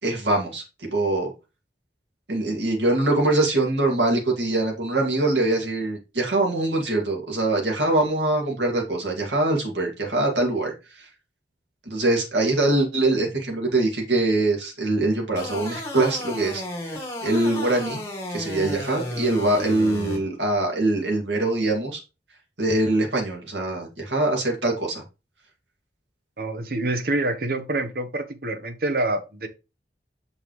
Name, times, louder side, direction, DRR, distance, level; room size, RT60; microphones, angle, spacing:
voice 1, 0.0-1.3 2.3-11.1 11.9-16.6 17.2-18.0 18.3-22.0 22.6-25.0, right 2 dB, 85° right, 2.2 m, -23 dB
sound 1, 15.4-20.2, left 1 dB, 15° left, 2.0 m, -33 dB
voice 2, 26.4-29.5, right 2 dB, 55° right, 0.9 m, -26 dB
6.7 x 5.5 x 3.1 m
head